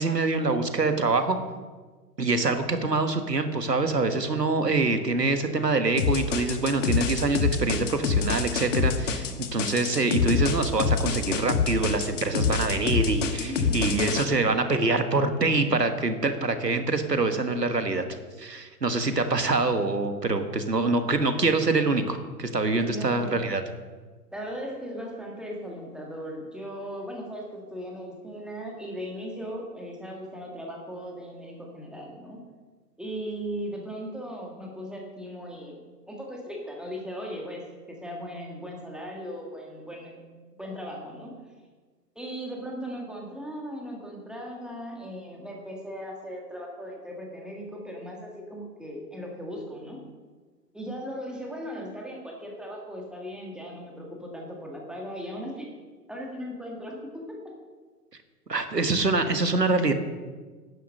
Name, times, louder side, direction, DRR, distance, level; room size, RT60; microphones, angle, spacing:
voice 1, 0.0-1.4 2.2-18.0 18.4-23.6 58.5-59.9, right 3 dB, 85° right, 8 dB, 1.5 m, -25 dB
sound 1, 6.0-14.2, left 5 dB, 50° left, 1.4 m, -26 dB
voice 2, 13.4-14.0 16.2-16.5 22.9-23.6 24.3-32.4 33.0-35.8 36.1-40.2 40.6-41.4 42.1-50.0 50.7-55.7 56.1-57.5, equal, ahead, -1 dB, 1.6 m, -38 dB
11.0 x 10.0 x 6.4 m, 1.4 s
figure-of-eight pair, 120°, 48 cm